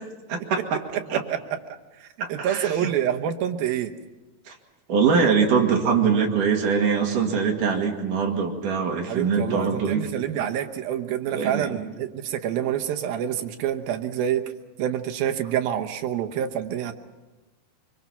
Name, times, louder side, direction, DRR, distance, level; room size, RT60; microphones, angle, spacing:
voice 1, 0.3-0.8 1.1-1.2 2.2-2.9 4.5-4.6 4.9-10.0 10.4-10.5 11.3-11.8, right 6 dB, 65° right, 2 dB, 3.5 m, -23 dB
voice 2, 1.7-3.9 9.1-14.5 14.8-16.9, right 10 dB, 80° right, 5 dB, 2.9 m, -27 dB
25.0 x 24.0 x 5.8 m, 1.2 s
omnidirectional pair, 4.2 m